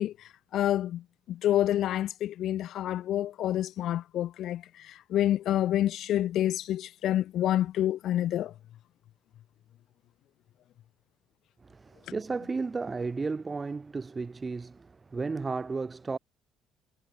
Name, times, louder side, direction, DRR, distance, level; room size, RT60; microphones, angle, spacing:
voice 1, 0.0-8.5, left 12 dB, 60° left, 2.0 m, -28 dB
voice 2, 11.6-16.2, right 4 dB, 20° right, 5.9 m, -34 dB
cardioid pair, 140°, 0 cm